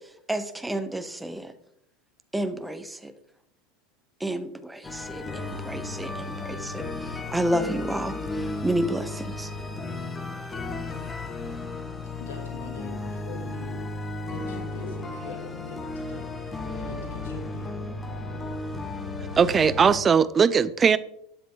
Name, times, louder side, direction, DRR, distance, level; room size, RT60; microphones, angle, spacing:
voice 1, 0.3-1.5 2.3-3.1 4.2-8.2 8.6-9.5, right 1 dB, 5° right, 10 dB, 1.0 m, -30 dB
sound 1, 4.8-19.9, left 2 dB, 20° left, 1.8 m, -34 dB
voice 2, 12.2-17.9, left 4 dB, 70° left, 2 dB, 2.5 m, -43 dB
voice 3, 19.4-21.0, right 6 dB, 25° right, 17 dB, 0.6 m, -19 dB
12.0 x 10.0 x 3.9 m, 0.74 s
figure-of-eight pair, 80°, 0 cm